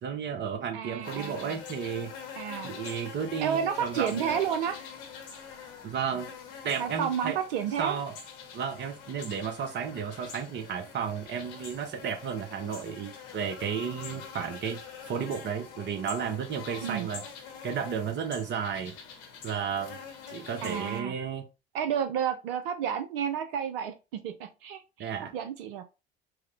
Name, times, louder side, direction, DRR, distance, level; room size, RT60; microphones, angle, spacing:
voice 1, 0.0-2.1 2.6-4.4 5.8-6.3 6.6-7.4 7.8-8.1 8.5-17.2 17.6-18.9 19.4-20.0 20.3-21.4 25.0-25.3, right 7 dB, 35° right, 7 dB, 0.8 m, -33 dB
voice 2, 0.7-1.6 2.4-2.7 3.4-4.8 6.8-8.0 16.8-17.1 20.6-21.1 21.7-25.8, right 8 dB, 60° right, 7 dB, 0.6 m, -31 dB
sound 1, 1.0-21.0, left 6 dB, 60° left, 0.9 m, -45 dB
4.7 x 2.0 x 3.2 m, 0.28 s
figure-of-eight pair, 65°, 31 cm